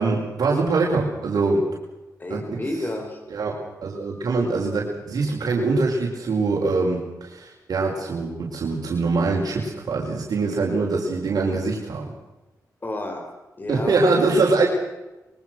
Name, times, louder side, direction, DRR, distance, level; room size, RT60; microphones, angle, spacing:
voice 1, 0.0-1.7 2.3-2.6 3.3-12.1 13.7-14.7, right 3 dB, 70° right, -2 dB, 5.2 m, -23 dB
voice 2, 2.2-3.2 12.8-13.2 13.6-14.0, left 1 dB, 30° left, 4 dB, 5.0 m, -30 dB
25.5 x 23.0 x 6.4 m, 1.1 s
cardioid pair, 90°, 7 cm